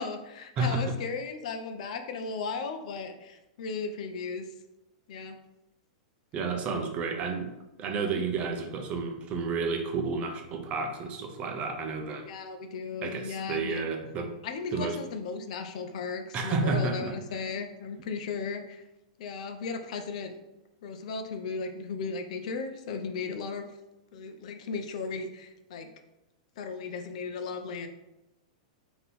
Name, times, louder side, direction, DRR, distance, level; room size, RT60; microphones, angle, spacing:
voice 1, 0.0-4.4 5.1-5.4 12.2-13.8 14.4-18.8 19.2-20.4 20.8-23.7 24.1-25.9 26.6-27.9, left 4 dB, 65° left, 6 dB, 0.6 m, -36 dB
voice 2, 0.6-0.9 6.3-12.2 13.0-14.3 14.7-15.0 16.3-17.2, right 4 dB, 30° right, 4 dB, 0.7 m, -31 dB
3.7 x 2.9 x 4.1 m, 0.96 s
hypercardioid pair, 130°, 4 cm